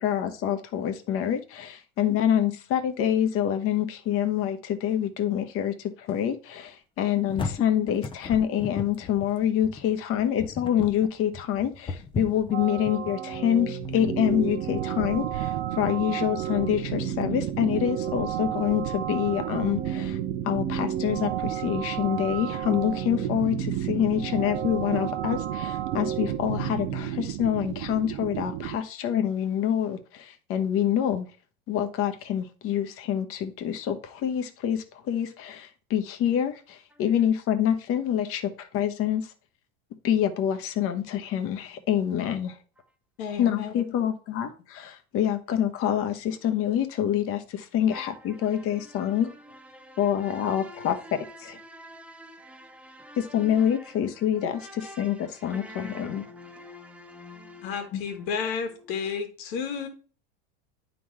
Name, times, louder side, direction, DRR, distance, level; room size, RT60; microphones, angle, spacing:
voice 1, 0.0-20.2 20.4-31.3 31.7-39.3 40.0-42.6 43.4-44.5 44.8-49.3 50.0-51.6 53.2-56.2 57.9-58.0, left 10 dB, 45° left, 1.2 m, -26 dB
sound 1, 7.0-14.2, left 4 dB, 15° left, 0.6 m, -36 dB
sound 2, 12.5-27.3, right 8 dB, 35° right, 1.0 m, -33 dB
sound 3, 14.1-28.8, right 14 dB, 60° right, 0.7 m, -34 dB
voice 2, 43.2-43.7 50.8-50.9 57.6-59.9, left 6 dB, 70° left, 2.0 m, -32 dB
voice 3, 47.9-49.2 49.5-53.9 54.6-57.9, equal, 5° right, 1.0 m, -46 dB
9.3 x 3.9 x 4.7 m
supercardioid pair, 125°, 31 cm